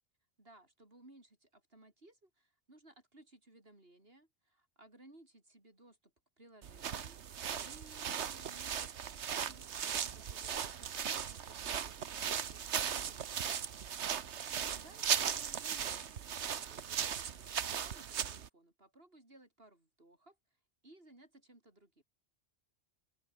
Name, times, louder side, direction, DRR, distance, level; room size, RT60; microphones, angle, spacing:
voice 1, 0.4-7.2 7.6-8.9 9.4-13.7 14.6-22.0, right 1 dB, 55° right, 5.2 m, -61 dB
sound 1, 6.6-18.5, right 8 dB, 75° right, 1.3 m, -37 dB
open air
omnidirectional pair, 1.2 m